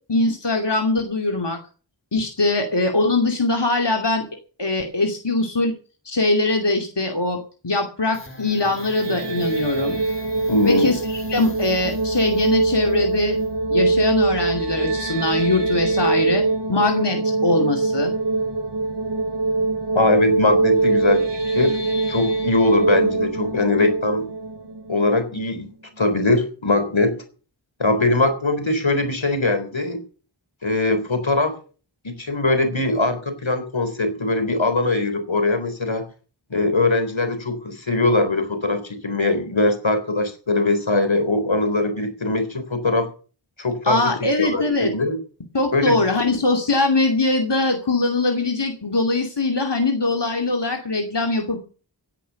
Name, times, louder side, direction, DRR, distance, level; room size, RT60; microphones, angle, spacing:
voice 1, 0.1-1.6 2.1-4.2 4.6-5.8 6.1-10.0 10.6-13.4 13.7-18.1 43.8-44.9 45.5-51.6, left 2 dB, 65° left, 3 dB, 2.6 m, -22 dB
sound 1, 8.1-16.6, left 2 dB, 25° left, 3.8 m, -41 dB
sound 2, 8.6-25.7, right 3 dB, 65° right, 3.2 m, -23 dB
voice 2, 10.5-10.9 19.9-21.8 22.1-24.3 24.9-25.7 26.0-27.2 27.8-30.0 30.6-31.6 32.0-36.1 36.5-43.1 43.6-44.1 44.4-44.6 44.9-45.2 45.7-46.0, left 2 dB, 90° left, 8 dB, 3.8 m, -21 dB
16.0 x 10.5 x 7.0 m, 0.38 s
wide cardioid pair, 45°, 45 cm